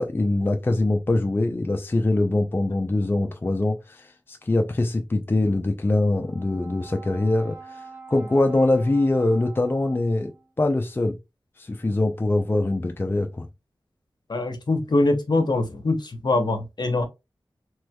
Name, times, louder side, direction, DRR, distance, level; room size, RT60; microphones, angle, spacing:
voice 1, 0.0-10.3 10.6-11.1 11.6-13.5, left 2 dB, 25° left, 0.4 m, -23 dB
Brass instrument, 6.1-10.5, right 4 dB, 30° right, 1.2 m, -44 dB
voice 2, 14.3-17.1, left 2 dB, 55° left, 0.8 m, -23 dB
3.1 x 3.0 x 2.2 m
wide cardioid pair, 70°, 9 cm